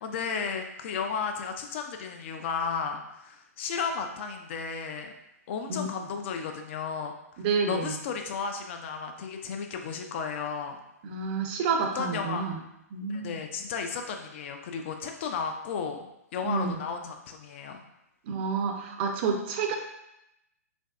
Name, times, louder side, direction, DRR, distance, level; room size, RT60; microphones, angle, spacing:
voice 1, 0.0-5.1 5.5-7.1 7.7-10.8 11.9-12.4 13.1-17.8, left 6 dB, 45° left, 5 dB, 0.4 m, -34 dB
voice 2, 7.4-8.0 11.0-12.6 12.9-13.4 16.4-16.8 18.3-19.8, right 5 dB, 40° right, 3 dB, 0.5 m, -29 dB
3.2 x 2.5 x 2.3 m, 0.85 s
figure-of-eight pair, 120°, 9 cm